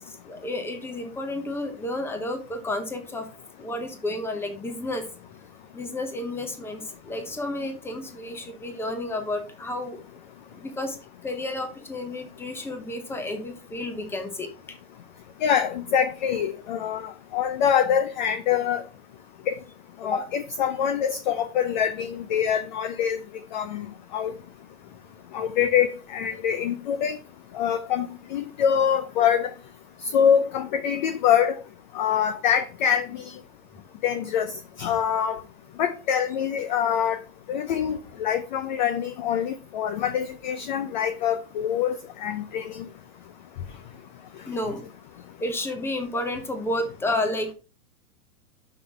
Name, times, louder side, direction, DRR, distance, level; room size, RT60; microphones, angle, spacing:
voice 1, 0.1-3.3 3.6-5.1 5.7-10.0 10.5-11.0 11.2-14.5 20.0-20.3 44.5-44.9 45.4-47.5, left 1 dB, 5° left, 0.8 m, -31 dB
voice 2, 15.4-18.8 19.5-19.6 20.0-23.2 23.5-23.9 24.1-24.3 25.3-27.2 27.5-29.5 30.1-31.6 31.9-33.2 34.0-34.5 34.8-35.4 35.8-37.2 37.5-42.8, left 8 dB, 35° left, 0.4 m, -24 dB
5.7 x 5.5 x 4.6 m
hypercardioid pair, 145°, 45 cm